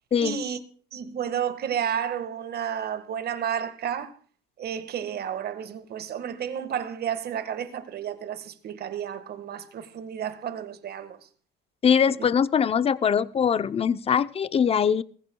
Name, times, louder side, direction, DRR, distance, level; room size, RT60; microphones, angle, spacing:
voice 1, 0.2-0.6 0.9-4.1 4.6-11.2 12.1-12.2, right 9 dB, 50° right, 1.7 m, -31 dB
voice 2, 11.8-15.0, left 7 dB, 30° left, 0.7 m, -22 dB
20.5 x 15.0 x 2.3 m
cardioid pair, 105°, 21 cm